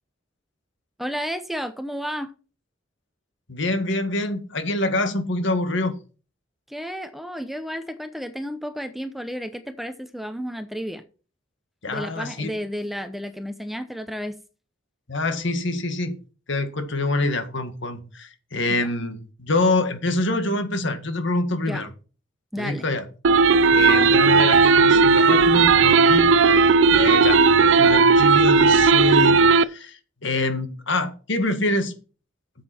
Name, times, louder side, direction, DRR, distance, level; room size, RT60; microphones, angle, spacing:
voice 1, 1.0-2.3 6.7-11.0 11.9-14.4 18.8-18.9 21.5-21.9 22.5-22.9, equal, ahead, 0.7 m, -32 dB
voice 2, 3.5-5.9 11.8-12.5 15.1-16.2 16.5-21.9 22.6-23.1 23.7-31.9, left 2 dB, 65° left, 1.9 m, -26 dB
sound 1, 23.2-29.6, right 4 dB, 65° right, 0.5 m, -15 dB
9.6 x 7.7 x 4.4 m
head